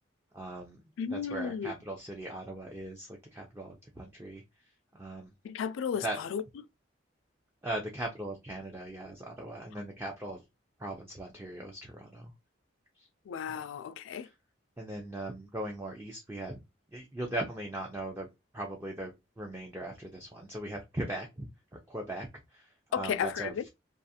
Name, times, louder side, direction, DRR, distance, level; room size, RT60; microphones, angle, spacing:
voice 1, 0.3-0.8 1.1-4.4 4.9-5.3 6.0-6.2 7.6-10.4 10.8-12.3 13.0-13.1 13.5-13.6 14.2-14.3 14.8-16.6 16.9-18.3 18.5-21.5 21.9-23.7, right 1 dB, 15° right, 0.4 m, -39 dB
voice 2, 1.0-1.7 5.4-6.0 6.3-6.4 13.3-14.3 22.9-23.6, left 7 dB, 80° left, 0.3 m, -33 dB
2.4 x 2.4 x 2.7 m
head